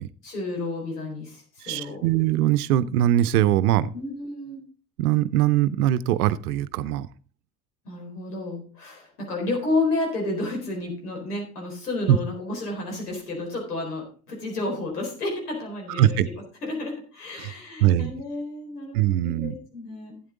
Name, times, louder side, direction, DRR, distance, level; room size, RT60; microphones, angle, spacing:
voice 1, 0.2-2.1 3.9-4.6 7.8-20.2, left 2 dB, 90° left, 0 dB, 4.2 m, -31 dB
voice 2, 1.6-3.9 5.0-7.1 12.1-12.2 16.0-16.3 17.4-17.5 17.8-18.1 18.9-19.5, right 12 dB, 80° right, 16 dB, 0.7 m, -21 dB
12.5 x 8.8 x 3.8 m, 0.41 s
hypercardioid pair, 70°, 45 cm